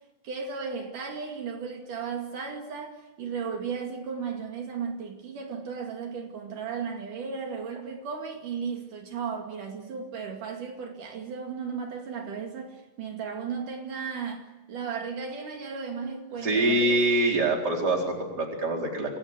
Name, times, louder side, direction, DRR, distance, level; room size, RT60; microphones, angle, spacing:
voice 1, 0.2-17.0, right 6 dB, 75° right, 3.9 m, -35 dB
voice 2, 16.4-19.2, right 2 dB, 30° right, 4.8 m, -25 dB
27.0 x 21.0 x 8.1 m
omnidirectional pair, 3.7 m